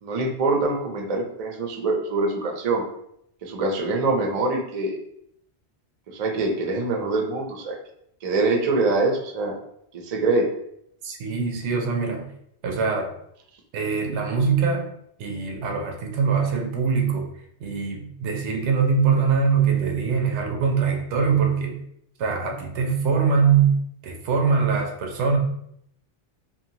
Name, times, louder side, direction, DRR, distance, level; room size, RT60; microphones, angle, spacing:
voice 1, 0.0-2.8 3.4-5.0 6.1-7.8 8.2-9.6 10.0-10.5, right 3 dB, 50° right, 1 dB, 0.5 m, -24 dB
voice 2, 11.0-12.3 12.6-13.1 13.7-14.9 15.2-17.3 17.6-21.8 22.2-23.8 24.0-25.4, right 5 dB, 85° right, 3 dB, 0.9 m, -22 dB
2.7 x 2.2 x 2.7 m, 0.73 s
omnidirectional pair, 1.1 m